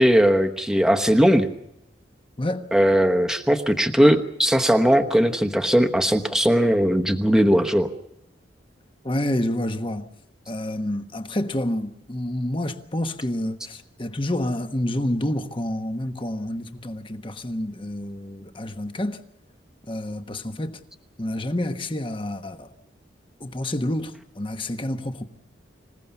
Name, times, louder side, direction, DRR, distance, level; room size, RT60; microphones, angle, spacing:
voice 1, 0.0-1.5 2.7-7.9, equal, 5° right, 1.1 m, -19 dB
voice 2, 9.0-10.0 10.5-19.2 19.9-20.8 21.2-22.7 23.4-25.2, left 1 dB, 25° left, 1.2 m, -28 dB
26.0 x 16.0 x 7.1 m
head